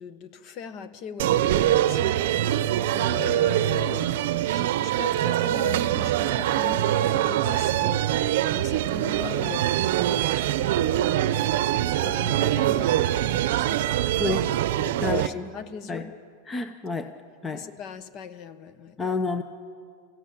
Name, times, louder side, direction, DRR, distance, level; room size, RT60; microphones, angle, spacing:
voice 1, 0.0-14.3 14.7-16.1 17.5-19.0, left 7 dB, 35° left, 12 dB, 1.1 m, -39 dB
sound 1, 1.2-15.3, right 12 dB, 65° right, 0.7 m, -24 dB
voice 2, 14.2-14.5 15.0-15.5 15.9-16.0 16.5-17.1 17.4-17.6 19.0-19.4, left 3 dB, 15° left, 9 dB, 0.8 m, -29 dB
24.0 x 16.0 x 9.0 m, 2.1 s
supercardioid pair, 155°, 0 cm